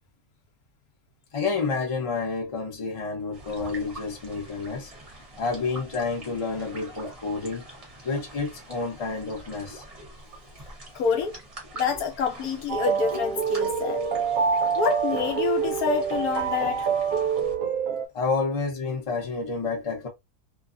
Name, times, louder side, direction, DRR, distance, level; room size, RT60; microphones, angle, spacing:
voice 1, 1.3-4.9 5.4-7.7 8.0-9.8 18.1-20.1, left 4 dB, 30° left, 0.6 m, -29 dB
sound 1, 3.3-17.6, right 2 dB, 30° right, 0.8 m, -45 dB
voice 2, 10.9-11.3 11.7-14.0 14.8-16.9, left 6 dB, 70° left, 1.1 m, -27 dB
sound 2, 12.7-18.1, right 6 dB, 70° right, 0.8 m, -26 dB
2.6 x 2.4 x 2.5 m
omnidirectional pair, 1.7 m